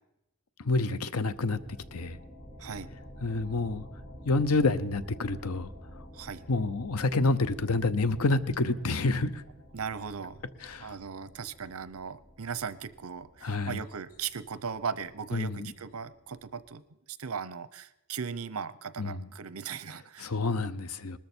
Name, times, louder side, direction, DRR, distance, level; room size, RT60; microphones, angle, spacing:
voice 1, 0.6-1.6 1.9-2.2 3.2-3.8 4.2-5.7 6.5-9.4 10.6-10.9 13.4-13.8 15.3-15.7 19.0-19.3 20.2-21.2, left 3 dB, 85° left, 0.8 m, -28 dB
sound 1, 1.3-16.7, equal, 50° left, 3.9 m, -50 dB
voice 2, 6.1-6.5 9.7-10.4 10.8-20.3, right 6 dB, 75° right, 0.7 m, -38 dB
20.0 x 13.5 x 4.4 m
head